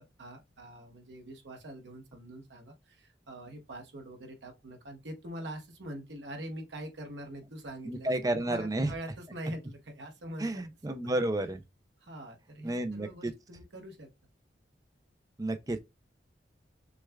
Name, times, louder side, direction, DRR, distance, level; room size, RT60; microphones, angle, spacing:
voice 1, 0.0-11.2 12.0-14.1, right 1 dB, 75° right, 1.1 m, -44 dB
voice 2, 7.9-8.9 10.4-11.6 12.6-13.3 15.4-15.8, right 1 dB, 20° right, 0.4 m, -31 dB
6.2 x 2.3 x 2.3 m
head